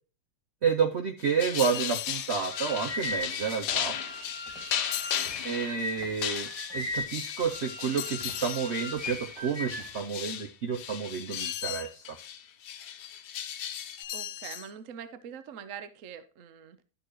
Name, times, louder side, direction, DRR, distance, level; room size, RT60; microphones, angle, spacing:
voice 1, 0.6-4.0 5.4-12.2, right 6 dB, 80° right, 0.6 m, -30 dB
sound 1, 1.2-11.7 12.0-14.0, left 10 dB, 65° left, 1.2 m, -36 dB
sound 2, 1.6-2.4 4.9-5.4 8.0-8.7 11.3-11.9 14.0-14.7, left 13 dB, 85° left, 1.4 m, -36 dB
sound 3, 2.3-10.0, left 2 dB, 15° left, 2.1 m, -38 dB
voice 2, 14.1-16.8, right 8 dB, 55° right, 0.9 m, -43 dB
12.0 x 6.3 x 3.1 m
omnidirectional pair, 2.1 m